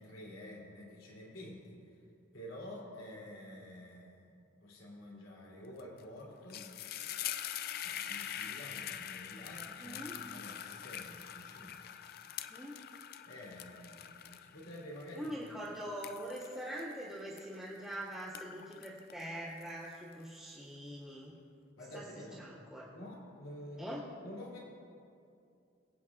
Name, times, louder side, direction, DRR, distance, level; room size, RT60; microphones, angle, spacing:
voice 1, 0.0-2.0 2.3-6.7 7.8-11.8 13.3-15.4 21.8-22.4 22.8-24.0 24.2-24.6, left 1 dB, 90° left, -4 dB, 3.0 m, -49 dB
sound 1, 5.8-6.0 6.3-17.8 18.2-20.1, left 10 dB, 50° left, 0.3 m, -44 dB
voice 2, 9.8-10.1 12.5-12.8 15.1-21.3 21.9-22.0 22.4-22.9 23.8-24.0, equal, ahead, -13 dB, 1.8 m, -43 dB
24.5 x 8.6 x 2.4 m, 2.5 s
head